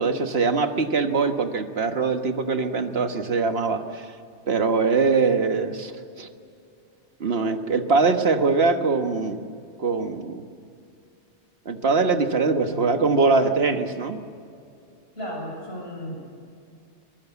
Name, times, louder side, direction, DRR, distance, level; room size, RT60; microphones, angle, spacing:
voice 1, 0.0-4.1 4.5-6.3 7.2-9.4 9.8-10.5 11.7-14.2, right 4 dB, 60° right, 7 dB, 1.6 m, -22 dB
voice 2, 15.2-16.2, equal, 60° left, -1 dB, 7.8 m, -34 dB
23.0 x 22.5 x 8.3 m, 2.4 s
omnidirectional pair, 1.2 m